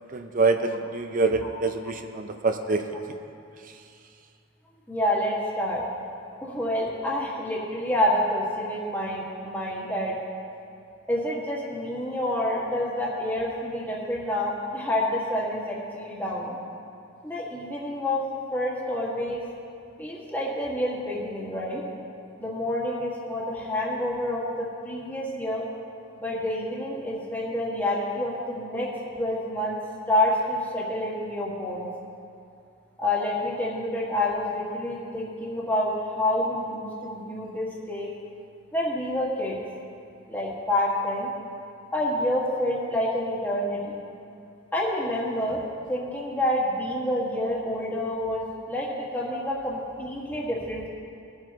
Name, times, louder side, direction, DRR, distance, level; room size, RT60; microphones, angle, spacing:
voice 1, 0.1-2.8, right 3 dB, 45° right, 6 dB, 0.6 m, -25 dB
voice 2, 4.9-5.8 6.4-10.2 11.1-16.6 17.2-18.2 18.5-19.4 20.0-21.8 22.4-25.6 26.2-28.9 29.1-29.8 30.1-31.9 33.0-38.1 38.7-39.6 40.3-41.3 41.9-44.0 44.7-45.6 45.9-50.9, left 1 dB, 10° left, -6 dB, 1.8 m, -28 dB
20.5 x 7.5 x 3.0 m, 2.5 s
head